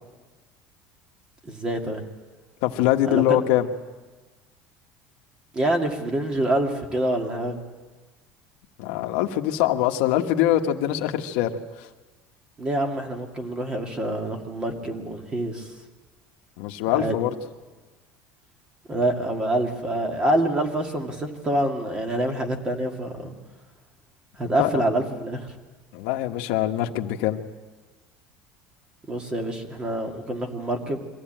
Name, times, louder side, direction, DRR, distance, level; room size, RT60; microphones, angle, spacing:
voice 1, 1.4-2.0 3.0-3.5 5.5-7.6 12.6-15.7 16.9-17.2 18.9-23.3 24.4-25.5 29.1-31.0, right 1 dB, 20° right, 4 dB, 2.2 m, -26 dB
voice 2, 2.6-3.7 8.8-11.5 11.8-11.9 16.6-17.3 24.6-24.8 25.9-27.4, left 13 dB, 75° left, 5 dB, 1.3 m, -23 dB
23.5 x 15.5 x 9.0 m, 1.3 s
cardioid pair, 160°, 5 cm